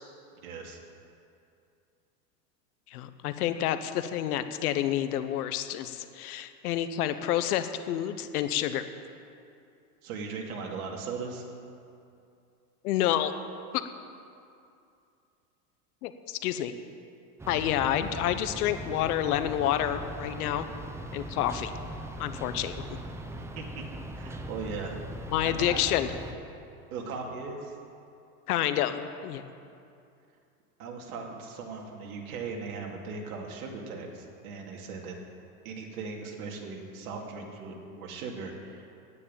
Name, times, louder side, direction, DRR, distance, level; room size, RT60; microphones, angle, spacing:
voice 1, 0.3-0.8 10.0-11.4 17.4-17.8 23.3-23.9 24.2-25.8 26.9-27.7 30.8-35.2 35.6-38.9, right 4 dB, 70° right, 0 dB, 2.6 m, -39 dB
voice 2, 2.9-8.8 12.8-13.3 13.7-13.8 16.0-16.7 17.5-20.6 21.1-21.7 22.2-23.0 25.3-26.1 28.5-29.4, left 11 dB, 70° left, 10 dB, 1.1 m, -29 dB
sound 1, 17.4-26.3, right 1 dB, 5° right, 0.6 m, -40 dB
9.9 x 9.5 x 8.9 m, 2.5 s
supercardioid pair, 125°, 46 cm